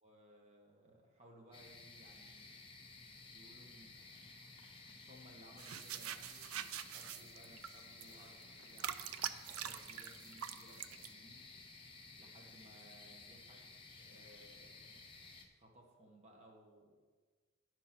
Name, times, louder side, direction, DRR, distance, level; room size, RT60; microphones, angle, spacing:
voice 1, 0.0-9.0 9.5-11.4 12.2-15.0 15.6-17.0, right 1 dB, 30° right, 0 dB, 1.3 m, -62 dB
sound 1, 1.5-15.5, left 3 dB, 25° left, 0.9 m, -56 dB
sound 2, 5.6-11.1, right 10 dB, 70° right, 0.4 m, -44 dB
11.0 x 4.6 x 5.9 m, 1.5 s
head